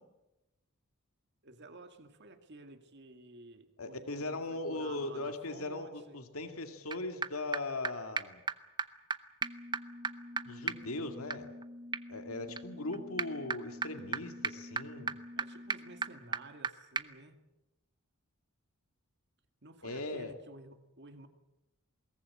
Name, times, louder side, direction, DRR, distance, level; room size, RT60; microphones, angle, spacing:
voice 1, 1.4-6.2 15.4-17.4 19.6-21.3, right 2 dB, 55° right, 7 dB, 2.2 m, -53 dB
voice 2, 3.8-8.4 10.4-11.5 12.1-15.2 19.8-20.3, left 2 dB, 80° left, 6 dB, 2.3 m, -39 dB
sound 1, 6.9-7.0 7.2-7.3 7.5-7.6 7.8-7.9 8.2-8.3 8.5-8.6 8.8-8.9 9.1-9.2 9.4-16.7 17.0-17.1, right 4 dB, 20° right, 0.8 m, -38 dB
21.5 x 18.5 x 8.6 m, 0.98 s
head